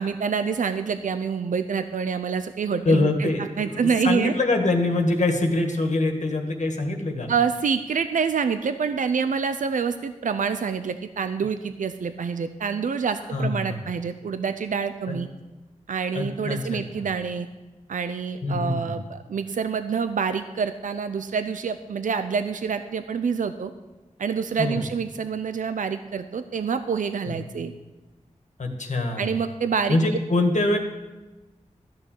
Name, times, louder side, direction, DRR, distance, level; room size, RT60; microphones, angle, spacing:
voice 1, 0.0-4.3 7.3-15.3 15.9-17.5 17.9-23.7 24.2-27.7 29.2-30.0, right 6 dB, 90° right, 10 dB, 0.6 m, -27 dB
voice 2, 2.9-7.3 13.3-13.8 16.1-16.8 18.4-18.9 24.6-24.8 27.3-27.4 28.6-29.3 29.9-30.8, left 2 dB, 65° left, 3 dB, 1.8 m, -24 dB
13.5 x 6.4 x 8.4 m, 1.2 s
wide cardioid pair, 75°, 13 cm